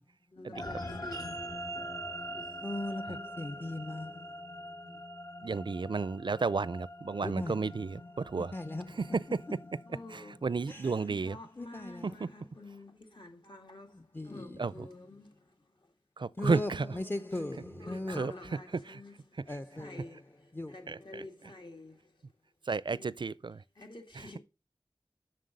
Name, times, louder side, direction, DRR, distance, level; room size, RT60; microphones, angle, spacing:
voice 1, 0.3-2.6 9.9-10.6 10.9-15.9 17.8-22.4 22.8-24.4, left 2 dB, 65° left, 2.2 m, -50 dB
sound 1, 0.5-11.2, equal, 45° left, 2.2 m, -44 dB
voice 2, 2.6-4.8 7.2-7.9 8.4-9.2 10.7-11.1 11.6-12.1 13.9-14.9 16.4-18.4 19.5-20.0 20.5-20.9, left 2 dB, 25° left, 0.6 m, -39 dB
voice 3, 5.4-8.0 8.3-8.5 9.1-9.2 10.4-11.4 14.6-14.7 16.2-16.9 18.2-18.3 20.9-21.0 22.7-23.6, right 4 dB, 60° right, 0.4 m, -31 dB
7.6 x 6.5 x 5.2 m
wide cardioid pair, 45°, 9 cm